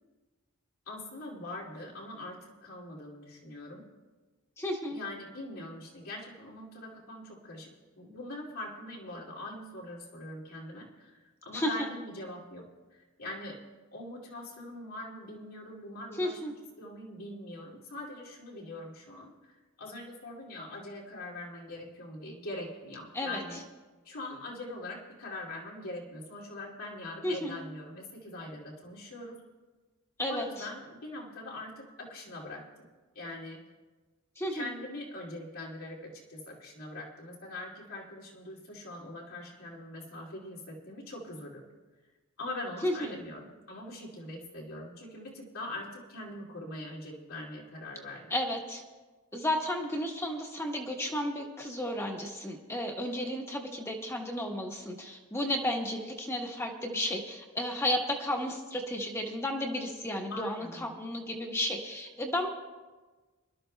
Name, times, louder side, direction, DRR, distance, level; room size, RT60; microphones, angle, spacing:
voice 1, 0.9-3.9 4.9-7.7 8.0-13.6 13.9-23.6 24.0-29.4 30.3-32.9 33.1-33.6 34.5-41.6 42.4-48.3 60.3-61.0, left 1 dB, 85° left, -3 dB, 2.5 m, -42 dB
voice 2, 4.6-5.0 11.5-11.7 16.2-16.5 23.1-23.4 27.2-27.6 30.2-30.5 34.4-34.7 42.8-42.9 48.3-48.8 49.3-62.5, left 1 dB, 15° left, 0 dB, 1.1 m, -33 dB
25.5 x 12.5 x 2.2 m, 1.3 s
head